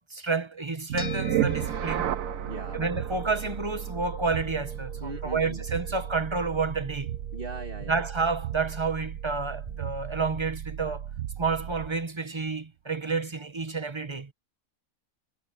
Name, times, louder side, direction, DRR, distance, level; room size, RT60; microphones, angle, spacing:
voice 1, 0.1-2.1 2.7-7.2 7.9-11.1 11.4-14.3, right 4 dB, 20° right, 1.3 m, -30 dB
sound 1, 0.9-12.0, right 11 dB, 70° right, 1.2 m, -34 dB
sound 2, 1.0-9.6, left 2 dB, 85° left, 3.2 m, -45 dB
voice 2, 2.5-2.8 5.0-5.8 7.3-8.0, right 3 dB, 40° right, 2.4 m, -39 dB
omnidirectional pair, 1.5 m